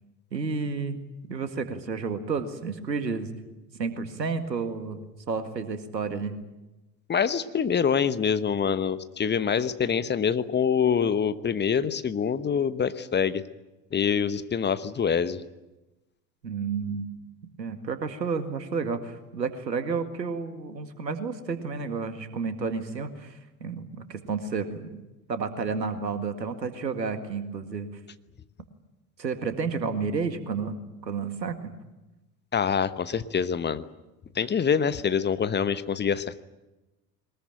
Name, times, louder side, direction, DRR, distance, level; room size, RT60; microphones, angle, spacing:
voice 1, 0.3-1.0 1.3-3.3 3.8-6.4 16.4-17.1 17.6-25.0 25.3-27.9 29.2-31.7, right 5 dB, 85° right, 9 dB, 2.1 m, -31 dB
voice 2, 7.1-13.4 13.9-15.4 32.5-33.8 34.3-36.4, left 7 dB, 20° left, 13 dB, 1.0 m, -25 dB
22.5 x 20.5 x 9.1 m, 1.0 s
figure-of-eight pair, 70°, 49 cm